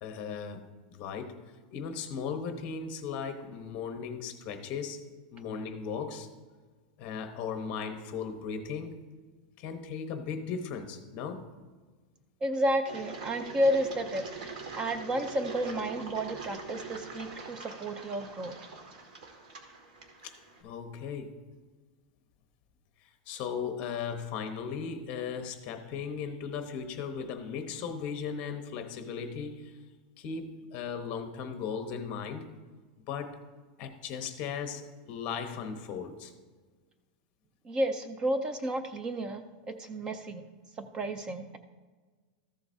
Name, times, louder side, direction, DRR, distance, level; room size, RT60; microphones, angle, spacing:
voice 1, 0.0-1.3 1.7-5.0 5.3-6.3 7.0-8.9 9.6-11.4 20.2-21.3 23.0-29.8 30.2-32.5 33.1-33.4 33.8-36.3, left 6 dB, 40° left, 7 dB, 0.9 m, -37 dB
voice 2, 12.4-14.2 14.8-18.5 37.6-40.4 40.8-41.6, right 1 dB, 20° right, 9 dB, 0.4 m, -31 dB
Engine, 12.8-20.6, right 4 dB, 85° right, 1.9 m, -43 dB
14.0 x 7.8 x 2.7 m, 1.4 s
supercardioid pair, 160°, 4 cm